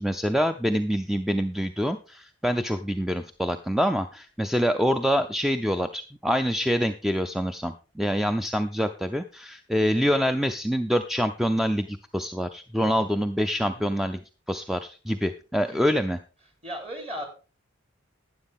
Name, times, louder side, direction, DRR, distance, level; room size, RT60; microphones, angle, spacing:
voice 1, 0.0-14.2 14.5-16.2, equal, ahead, 9 dB, 0.4 m, -26 dB
voice 2, 16.6-17.3, equal, 30° right, 3 dB, 3.3 m, -37 dB
11.5 x 9.6 x 3.6 m, 0.34 s
head